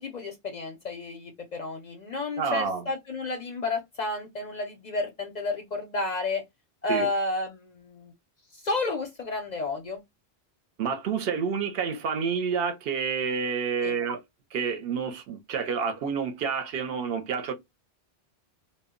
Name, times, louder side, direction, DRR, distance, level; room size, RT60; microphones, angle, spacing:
voice 1, 0.0-6.4 6.8-8.1 8.5-10.0 13.8-14.0, left 2 dB, 55° left, 0.5 m, -31 dB
voice 2, 2.4-2.8 6.9-7.1 10.8-14.2 14.5-17.5, right 6 dB, 70° right, 0.7 m, -29 dB
2.1 x 2.0 x 3.6 m
omnidirectional pair, 1.1 m